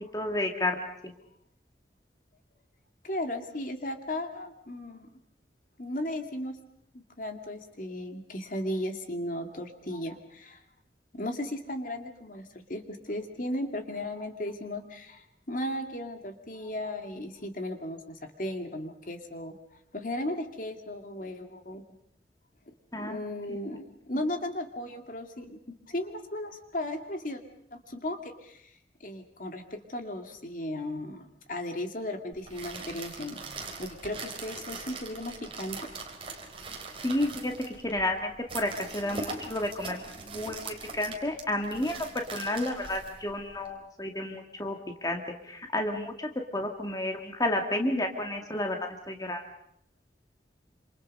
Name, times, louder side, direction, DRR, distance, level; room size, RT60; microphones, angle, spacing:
voice 1, 0.1-1.1 22.9-23.2 23.5-23.6 37.0-44.8 45.0-49.4, left 1 dB, 20° left, 3 dB, 2.0 m, -31 dB
voice 2, 3.0-5.1 5.8-6.6 6.9-10.6 11.1-21.8 23.0-25.6 25.9-27.4 27.7-35.9, left 1 dB, 45° left, 6 dB, 2.3 m, -36 dB
sound 1, 32.3-43.7, right 3 dB, 30° right, 3.9 m, -41 dB
27.5 x 27.5 x 5.4 m, 0.73 s
head